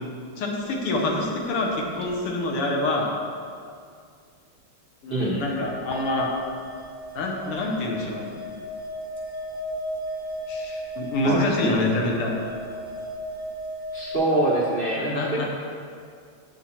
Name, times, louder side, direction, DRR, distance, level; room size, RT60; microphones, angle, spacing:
voice 1, 0.4-3.1 5.0-6.3 7.1-8.3 10.5-12.3 15.0-15.5, left 2 dB, 85° left, -1 dB, 2.0 m, -26 dB
sound 1, 0.6-1.7 2.0-2.1 5.3-5.6 5.9-14.2, equal, 15° left, 0.7 m, -36 dB
voice 2, 13.9-15.4, right 2 dB, 75° right, -5 dB, 0.5 m, -24 dB
8.0 x 7.2 x 4.2 m, 2.2 s
omnidirectional pair, 2.4 m